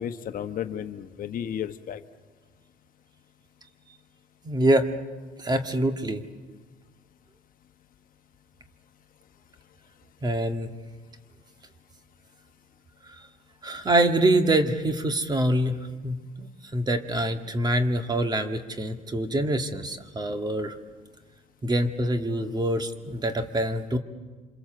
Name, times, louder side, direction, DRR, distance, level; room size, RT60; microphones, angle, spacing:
voice 1, 0.0-2.0, left 9 dB, 55° left, 9 dB, 1.1 m, -33 dB
voice 2, 4.4-4.9 5.4-6.2 10.2-10.7 13.6-20.7 21.6-24.0, right 1 dB, 25° right, 7 dB, 1.8 m, -25 dB
28.0 x 26.0 x 7.8 m, 1.4 s
cardioid pair, 110°, 17 cm